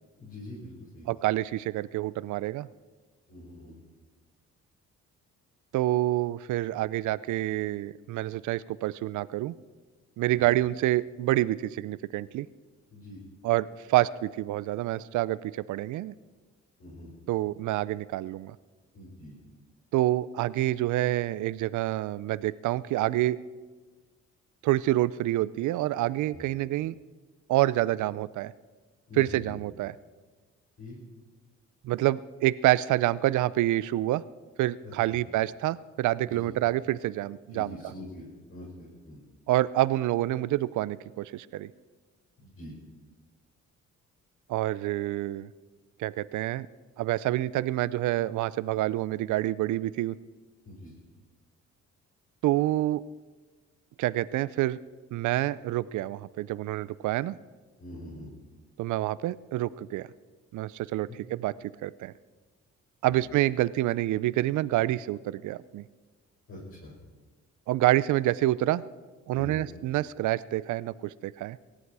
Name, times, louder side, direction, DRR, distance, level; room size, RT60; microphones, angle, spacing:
voice 1, 0.2-1.2 3.3-3.7 10.3-10.5 12.9-13.2 16.8-17.1 18.9-19.4 26.3-26.4 29.1-29.4 30.8-30.9 34.8-35.2 36.2-36.4 37.5-39.2 42.4-42.7 50.6-51.1 57.8-58.3 61.1-61.2 63.1-63.3 66.5-66.9 69.3-69.6, left 1 dB, 45° left, -5 dB, 6.0 m, -44 dB
voice 2, 1.1-2.7 5.7-9.5 10.2-12.5 13.4-16.1 17.3-18.6 19.9-23.4 24.6-26.9 27.5-28.5 29.2-29.9 31.8-34.2 34.6-37.8 39.5-41.7 44.5-45.5 46.0-46.7 47.0-50.2 52.4-53.0 54.0-54.8 55.1-57.4 58.8-60.1 60.5-62.1 63.0-65.8 67.7-68.8 69.3-71.6, right 15 dB, 75° right, 18 dB, 0.5 m, -27 dB
18.0 x 14.0 x 4.8 m, 1.3 s
cardioid pair, 90°, 30 cm